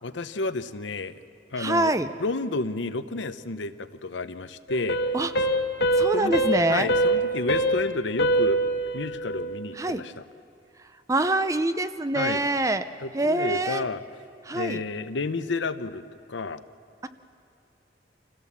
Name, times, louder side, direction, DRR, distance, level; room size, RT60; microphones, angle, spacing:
voice 1, 0.0-1.1 1.5-1.9 2.2-5.0 6.1-6.3 6.7-8.6 8.9-10.1 12.1-12.4 13.0-14.0 14.5-16.6, left 3 dB, 90° left, 11 dB, 0.8 m, -31 dB
voice 2, 1.6-2.1 5.1-5.3 6.0-6.9 9.8-10.0 11.1-12.9 13.1-13.8 14.4-14.8 17.0-17.1, right 2 dB, 15° right, 11 dB, 0.6 m, -25 dB
sound 1, 4.7-9.6, right 1 dB, 60° left, 1.2 m, -25 dB
27.0 x 16.5 x 7.3 m, 2.6 s
head